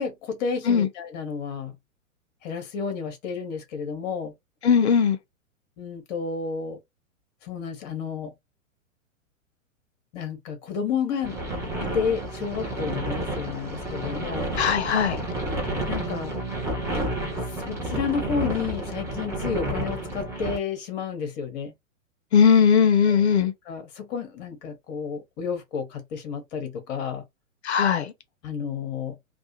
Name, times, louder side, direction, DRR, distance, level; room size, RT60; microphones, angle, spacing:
voice 1, 0.0-1.8 2.4-4.3 5.8-6.8 7.4-8.3 10.1-11.4 11.8-14.5 15.9-16.4 17.6-21.7 23.1-23.2 23.7-27.2 28.4-29.2, left 6 dB, 30° left, 0.9 m, -31 dB
voice 2, 4.6-5.2 14.6-15.2 22.3-23.5 27.6-28.1, left 7 dB, 55° left, 0.6 m, -19 dB
sound 1, 11.2-20.6, right 1 dB, 5° right, 0.5 m, -30 dB
2.3 x 2.2 x 2.8 m
figure-of-eight pair, 110°, 41 cm